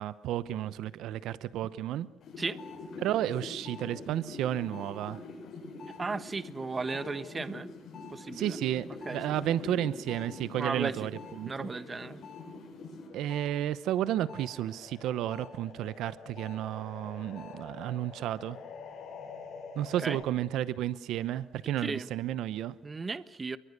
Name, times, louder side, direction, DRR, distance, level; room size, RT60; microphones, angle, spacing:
voice 1, 0.0-2.1 3.0-5.2 8.4-8.8 9.1-11.1 11.4-11.5 13.1-18.6 19.7-22.7, right 12 dB, 85° right, 16 dB, 0.9 m, -32 dB
sound 1, 2.2-13.5 13.9-20.2, left 4 dB, 65° left, 7.7 m, -45 dB
voice 2, 5.9-7.7 8.1-8.6 9.0-9.4 10.6-11.2 11.4-12.2 20.0-20.2 21.8-22.1 22.8-23.6, right 4 dB, 30° right, 14 dB, 1.2 m, -35 dB
28.0 x 23.5 x 6.7 m, 0.75 s
cardioid pair, 90°, 0 cm